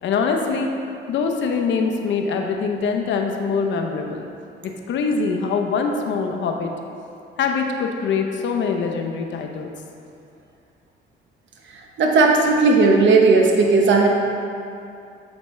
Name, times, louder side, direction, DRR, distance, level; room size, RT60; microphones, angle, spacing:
voice 1, 0.0-0.7 1.1-4.2 4.9-6.7 7.4-9.7, left 5 dB, 70° left, 3 dB, 0.7 m, -23 dB
voice 2, 11.7-14.1, right 3 dB, 70° right, 1 dB, 1.0 m, -16 dB
8.2 x 5.2 x 3.1 m, 2.5 s
cardioid pair, 90°, 20 cm